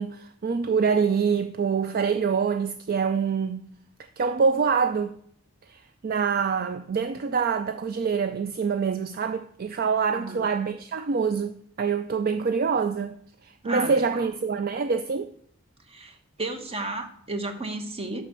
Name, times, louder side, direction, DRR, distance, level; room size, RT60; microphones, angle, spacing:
voice 1, 0.0-3.7 4.2-5.1 5.7-13.2 13.4-15.3, right 5 dB, 45° right, 0.4 m, -25 dB
voice 2, 10.1-10.5 13.6-14.3 15.9-18.2, right 2 dB, 25° right, 1.1 m, -34 dB
7.4 x 6.0 x 6.7 m
head